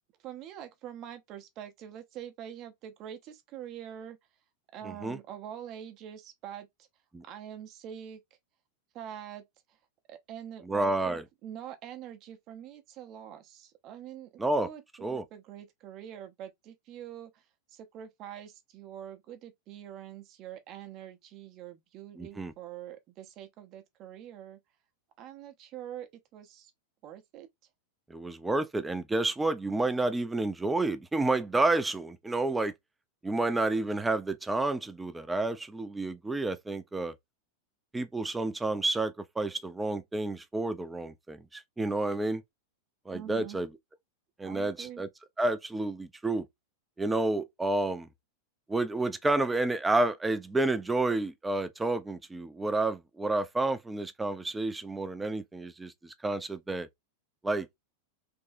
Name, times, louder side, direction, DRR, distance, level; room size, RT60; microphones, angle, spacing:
voice 1, 0.2-4.2 4.7-6.7 7.2-8.2 8.9-9.4 10.1-17.4 17.7-24.6 25.2-26.7 27.0-27.5 43.1-43.6 44.4-45.0, right 10 dB, 35° right, 0.9 m, -45 dB
voice 2, 4.8-5.2 7.1-7.2 10.7-11.2 14.4-14.7 15.0-15.2 22.2-22.5 28.1-32.7 33.2-37.1 37.9-42.4 43.1-43.7 44.4-45.1 45.4-46.5 47.0-48.1 48.7-56.9 57.4-57.7, right 2 dB, 10° right, 0.6 m, -30 dB
3.6 x 3.1 x 2.6 m
figure-of-eight pair, 90°, 0 cm